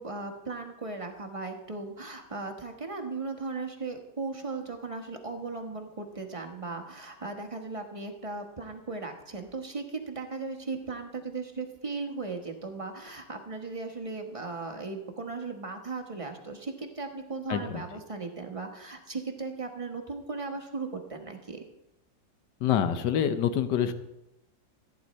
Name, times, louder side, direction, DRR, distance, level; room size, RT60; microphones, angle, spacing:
voice 1, 0.0-21.6, right 3 dB, 25° right, 3 dB, 0.8 m, -37 dB
voice 2, 17.5-17.8 22.6-23.9, left 9 dB, 70° left, 10 dB, 1.4 m, -26 dB
14.5 x 9.7 x 4.2 m, 0.93 s
omnidirectional pair, 2.1 m